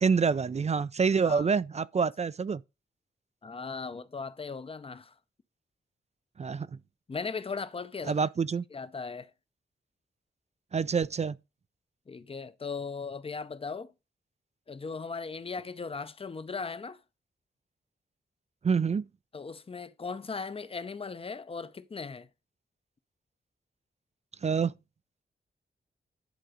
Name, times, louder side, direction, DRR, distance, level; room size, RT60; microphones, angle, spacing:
voice 1, 0.0-2.6 6.4-6.7 8.1-8.6 10.7-11.4 18.6-19.0 24.4-24.7, right 5 dB, 35° right, 0.3 m, -26 dB
voice 2, 3.4-5.1 7.1-8.3 8.7-9.3 12.1-13.9 14.7-17.0 19.3-22.3, left 4 dB, 30° left, 0.6 m, -38 dB
10.0 x 3.9 x 4.9 m
wide cardioid pair, 105°, 20 cm